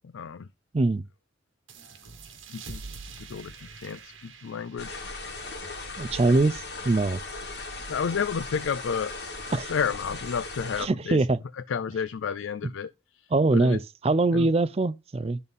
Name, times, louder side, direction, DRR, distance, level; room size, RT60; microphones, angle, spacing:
voice 1, 0.1-0.5 2.5-2.8 3.3-5.0 6.2-6.3 7.9-9.1 9.5-11.2 11.6-12.9 13.2-13.8 14.3-14.5, left 6 dB, 85° left, 0.4 m, -31 dB
sound 1, 1.7-6.9, right 4 dB, 80° right, 1.5 m, -46 dB
sound 2, 4.8-10.9, left 3 dB, 55° left, 2.0 m, -38 dB
voice 2, 6.0-7.2 9.5-9.7 10.8-11.4 13.3-15.4, right 2 dB, 30° right, 0.4 m, -23 dB
12.0 x 4.1 x 3.5 m
head